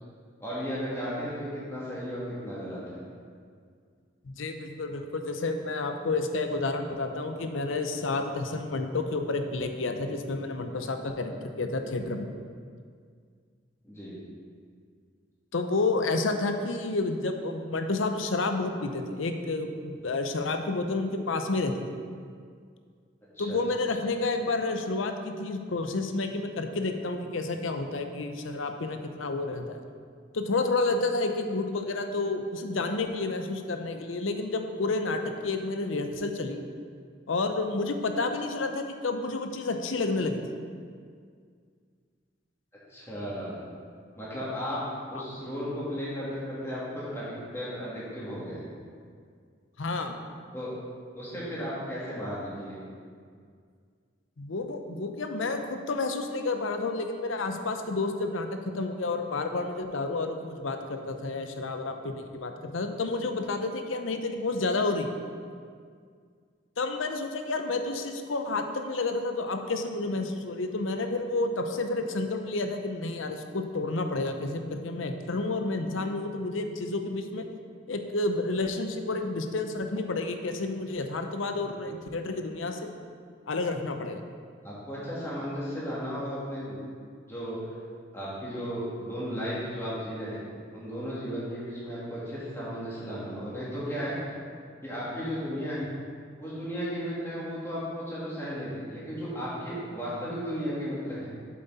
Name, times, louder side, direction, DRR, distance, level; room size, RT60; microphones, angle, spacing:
voice 1, 0.4-3.0 13.8-14.2 23.3-23.6 42.9-43.6 44.2-48.6 50.5-50.7 51.1-52.8 81.6-81.9 84.6-86.8 87.3-87.6 88.1-90.4 90.7-94.2 94.8-95.9 96.4-101.3, equal, 15° left, -9 dB, 2.4 m, -35 dB
voice 2, 4.2-12.3 15.5-21.7 23.4-29.8 30.3-36.6 37.3-40.4 45.1-45.2 49.8-50.2 54.4-65.1 66.8-77.4 77.9-82.9 83.5-84.2, left 3 dB, 90° left, 6 dB, 0.7 m, -30 dB
7.8 x 7.6 x 4.1 m, 2.1 s
head